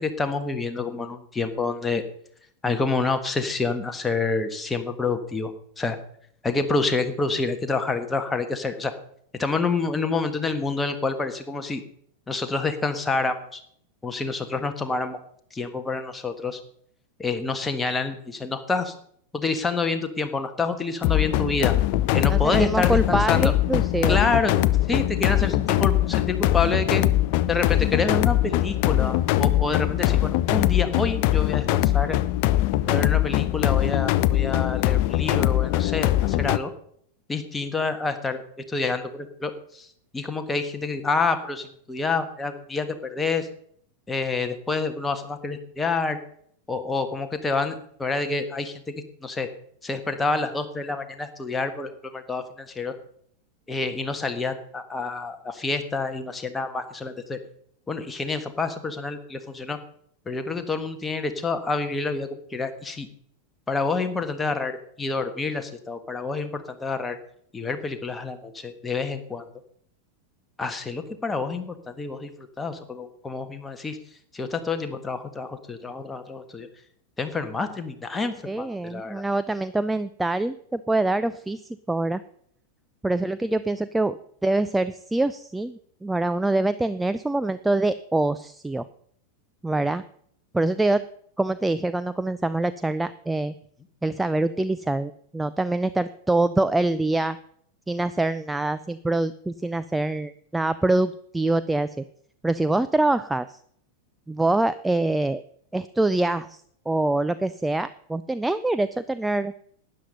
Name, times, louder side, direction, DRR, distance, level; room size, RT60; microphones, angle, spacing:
voice 1, 0.0-2.0 2.6-6.0 6.4-8.9 9.4-11.8 12.3-13.6 14.0-15.2 15.5-16.6 17.2-18.9 19.3-21.7 22.1-23.5 24.1-27.0 27.5-32.2 32.9-36.7 37.3-38.4 38.7-39.9 40.1-43.5 44.1-46.2 46.7-48.8 49.2-49.5 49.8-52.9 53.7-57.4 57.9-59.8 60.2-63.1 63.7-67.2 67.5-69.4 70.6-74.0 74.3-76.7 77.2-79.2, left 3 dB, 10° left, 7 dB, 1.4 m, -28 dB
sound 1, 21.0-36.6, left 15 dB, 45° left, 0.5 m, -22 dB
voice 2, 22.3-24.2 78.5-82.2 83.0-88.9 89.6-90.0 90.5-91.0 91.4-93.5 94.0-97.4 97.9-102.0 102.4-103.6 104.3-105.4 105.7-106.6 106.9-109.5, right 2 dB, 5° right, 12 dB, 0.4 m, -25 dB
12.5 x 9.5 x 5.4 m, 0.64 s
figure-of-eight pair, 90°, 0 cm